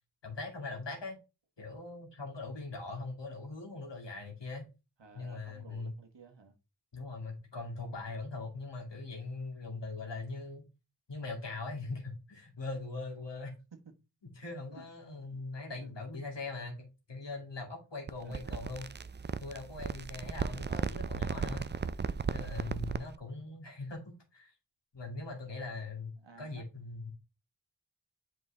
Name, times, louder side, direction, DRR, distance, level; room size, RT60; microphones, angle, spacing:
voice 1, 0.2-1.2 1.6-4.7 5.1-6.0 6.9-10.7 11.1-13.5 14.3-18.9 19.4-21.7 22.3-24.5 24.9-27.1, left 3 dB, 80° left, 2.2 m, -41 dB
voice 2, 5.0-6.5 14.7-14.9 15.2-15.4 15.7-15.9 18.2-18.9 20.5-20.9 26.2-26.6, right 4 dB, 85° right, 1.3 m, -55 dB
sound 1, 18.1-23.1, right 5 dB, 30° right, 0.3 m, -36 dB
8.1 x 4.5 x 3.3 m
wide cardioid pair, 55°, 42 cm